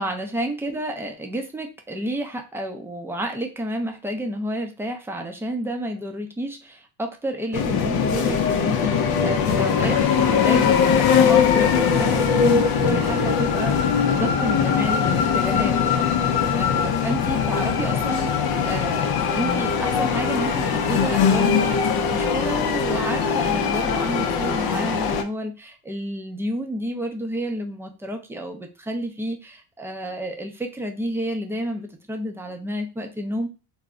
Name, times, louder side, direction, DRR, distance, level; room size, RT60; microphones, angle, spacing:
voice 1, 0.0-33.5, right 1 dB, 5° right, 3 dB, 0.5 m, -30 dB
sound 1, 7.5-25.2, left 6 dB, 50° left, 0.6 m, -21 dB
2.3 x 2.0 x 3.6 m, 0.30 s
supercardioid pair, 90°, 47 cm